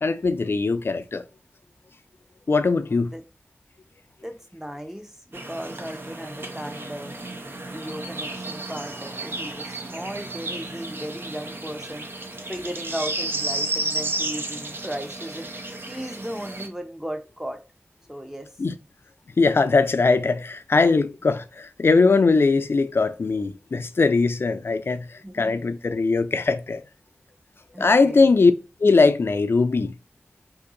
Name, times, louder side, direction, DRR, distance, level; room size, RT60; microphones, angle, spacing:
voice 1, 0.0-1.2 2.5-3.1 18.6-18.7 19.4-26.8 27.8-28.5 28.8-29.9, left 4 dB, 60° left, 0.3 m, -20 dB
voice 2, 2.8-3.2 4.2-7.2 7.7-12.1 12.5-15.5 15.9-17.6 18.1-18.5 25.2-25.7 27.7-28.3, equal, 10° right, 0.7 m, -36 dB
sound 1, 5.3-16.7, right 2 dB, 60° right, 0.6 m, -33 dB
2.7 x 2.6 x 3.8 m
wide cardioid pair, 60°, 4 cm